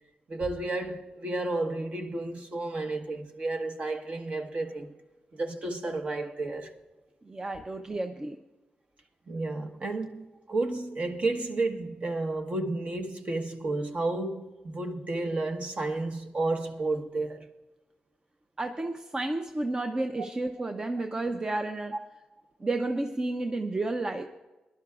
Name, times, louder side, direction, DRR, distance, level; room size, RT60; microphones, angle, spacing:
voice 1, 0.3-4.9 5.3-6.7 9.3-17.5, right 2 dB, 50° right, 1.3 m, -32 dB
voice 2, 7.2-8.4 18.6-21.9 22.6-24.2, right 2 dB, 25° right, 0.6 m, -31 dB
21.5 x 11.5 x 2.4 m
cardioid pair, 80°, 3 cm